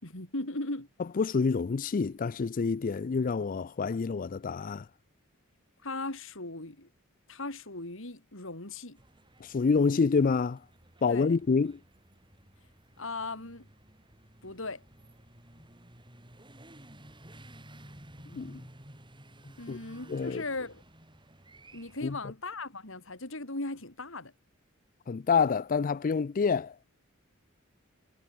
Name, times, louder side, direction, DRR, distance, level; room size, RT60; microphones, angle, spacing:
voice 1, 0.0-0.9 5.8-6.9 7.3-9.0 11.1-11.4 13.0-13.7 14.4-14.8 19.6-20.8 21.7-24.3, left 2 dB, 65° left, 4.2 m, -38 dB
voice 2, 1.2-4.8 9.4-10.6 11.0-11.7 18.3-18.6 19.7-19.8 20.1-20.4 22.0-22.1 25.1-26.7, left 5 dB, 40° left, 0.4 m, -27 dB
sound 1, 9.0-22.1, right 1 dB, 25° right, 6.3 m, -54 dB
head